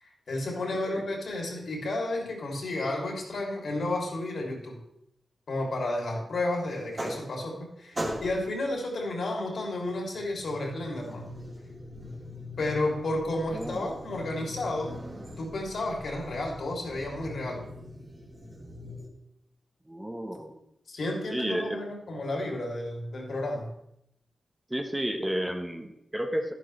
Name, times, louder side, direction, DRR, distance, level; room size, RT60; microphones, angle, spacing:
voice 1, 0.0-4.8 5.5-11.3 12.6-14.9 15.4-17.6 20.9-23.7, left 2 dB, 75° left, 0 dB, 3.1 m, -32 dB
voice 2, 0.7-1.0 13.5-14.0 19.9-20.6 21.3-21.8 24.7-26.5, equal, 15° right, 5 dB, 1.2 m, -32 dB
sound 1, 6.7-7.6 7.9-8.6 9.7-19.1, equal, 35° right, 2.6 m, -41 dB
11.5 x 11.0 x 3.3 m, 0.80 s
cardioid pair, 65°, 0 cm